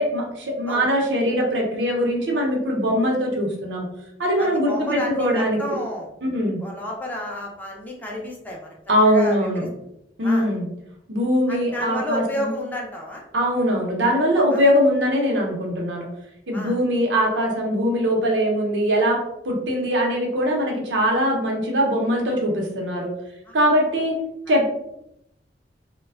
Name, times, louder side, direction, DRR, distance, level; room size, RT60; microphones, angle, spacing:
voice 1, 0.0-3.9 4.2-5.6 6.2-6.6 8.9-9.7 10.2-10.7 11.1-12.5 13.3-16.1 16.5-19.2 19.4-23.1 23.5-24.2 24.5-24.7, equal, 90° right, 0 dB, 0.7 m, -21 dB
voice 2, 4.4-6.1 6.6-8.7 9.0-9.7 10.2-10.5 11.5-13.3 14.5-14.6 16.5-16.8 23.5-23.6, left 1 dB, 10° left, -2 dB, 0.4 m, -31 dB
2.5 x 2.2 x 2.3 m, 0.80 s
head